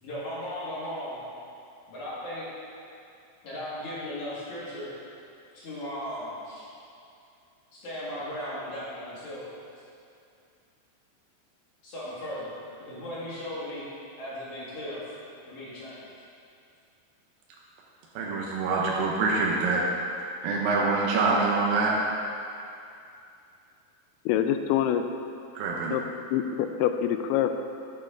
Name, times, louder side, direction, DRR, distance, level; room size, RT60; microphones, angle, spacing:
voice 1, 0.0-1.2 1.9-2.5 3.4-4.9 5.5-6.7 7.7-9.5 11.8-12.5 12.8-13.8 14.2-15.0 15.5-16.1, left 1 dB, 50° left, -9 dB, 2.9 m, -36 dB
voice 2, 18.2-19.8 20.4-21.9 25.6-26.0, right 3 dB, 85° right, -3 dB, 2.0 m, -25 dB
voice 3, 24.3-25.0 25.9-26.0 26.3-27.5, left 10 dB, 85° left, 8 dB, 2.7 m, -25 dB
9.1 x 8.9 x 3.9 m, 2.5 s
omnidirectional pair, 5.3 m